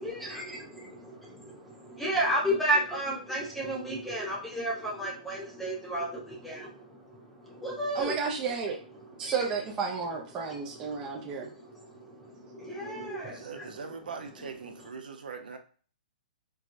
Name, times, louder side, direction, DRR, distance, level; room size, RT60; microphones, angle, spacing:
voice 1, 0.0-8.2 9.2-9.4 10.8-13.7, right 1 dB, ahead, -4 dB, 0.8 m, -33 dB
voice 2, 7.9-8.8 9.2-11.5, right 5 dB, 15° right, -2 dB, 0.4 m, -32 dB
voice 3, 13.3-15.6, right 5 dB, 85° right, 5 dB, 0.7 m, -41 dB
4.5 x 2.1 x 2.5 m, 0.40 s
hypercardioid pair, 160°, 5 cm